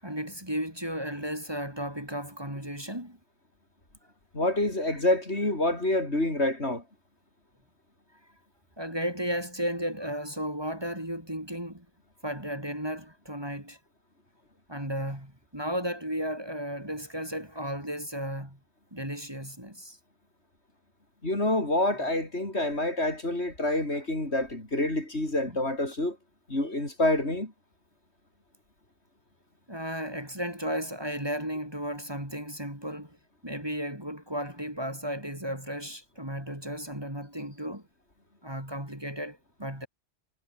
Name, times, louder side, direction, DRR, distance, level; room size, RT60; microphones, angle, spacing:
voice 1, 0.0-3.2 8.8-11.9 12.2-13.8 14.7-18.6 18.9-20.0 29.7-33.2 33.4-37.9 38.4-39.9, equal, 20° right, 5.4 m, -34 dB
voice 2, 4.3-6.8 21.2-26.2 26.5-27.5, left 1 dB, 60° left, 6.3 m, -27 dB
omnidirectional pair, 1.3 m